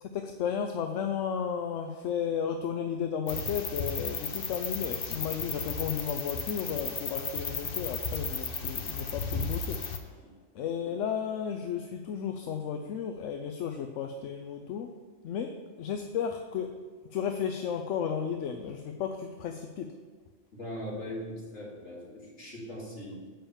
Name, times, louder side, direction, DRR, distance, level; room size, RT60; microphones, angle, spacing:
voice 1, 0.0-9.8 10.5-14.9 15.2-16.8 17.1-20.0, left 7 dB, 90° left, 6 dB, 1.0 m, -33 dB
sound 1, 3.3-10.0, left 5 dB, 55° left, 0.9 m, -34 dB
voice 2, 20.5-23.2, equal, 75° left, -5 dB, 2.8 m, -40 dB
7.2 x 5.6 x 6.9 m, 1.5 s
omnidirectional pair, 1.2 m